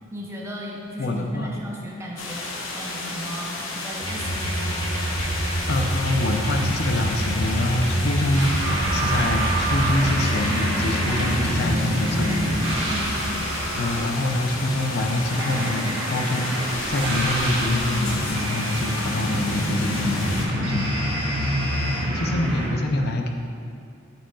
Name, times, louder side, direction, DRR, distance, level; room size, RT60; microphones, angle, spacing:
voice 1, 0.1-4.8 12.8-13.1 20.6-20.8 22.1-22.5, equal, 15° right, -3 dB, 0.5 m, -36 dB
voice 2, 1.0-1.6 5.7-12.9 13.8-20.9 22.1-23.3, left 1 dB, 50° left, 3 dB, 0.5 m, -26 dB
sound 1, 2.2-20.5, left 2 dB, 80° left, 0.8 m, -33 dB
sound 2, 4.0-11.6, right 1 dB, 20° left, 0.8 m, -27 dB
sound 3, 8.3-22.7, right 1 dB, 70° right, 1.3 m, -27 dB
7.1 x 6.0 x 2.3 m, 2.4 s
head